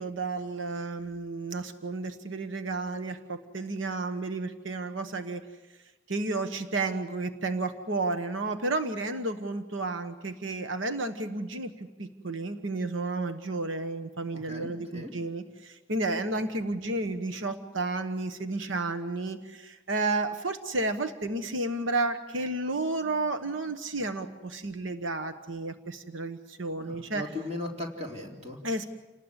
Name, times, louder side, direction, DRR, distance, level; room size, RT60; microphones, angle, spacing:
voice 1, 0.0-5.4 6.1-27.3 28.6-28.9, right 2 dB, 90° right, 8 dB, 1.2 m, -32 dB
voice 2, 14.3-15.1 26.8-28.6, left 1 dB, 35° right, 0 dB, 3.9 m, -38 dB
29.0 x 19.5 x 8.2 m, 1.2 s
head